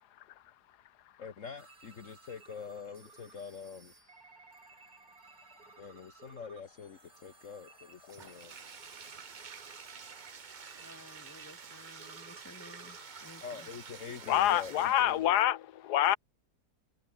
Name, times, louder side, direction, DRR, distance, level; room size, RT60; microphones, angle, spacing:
voice 1, 1.2-3.9 5.8-8.6 13.4-15.4, left 6 dB, 55° left, 1.6 m, -45 dB
sound 1, 1.6-15.4, right 4 dB, 65° right, 3.2 m, -58 dB
Bathtub (filling or washing), 8.1-15.3, right 6 dB, 35° right, 0.9 m, -49 dB
voice 2, 10.8-13.7, left 1 dB, 10° left, 2.4 m, -54 dB
voice 3, 14.3-16.2, left 12 dB, 85° left, 1.4 m, -26 dB
omnidirectional pair, 1.7 m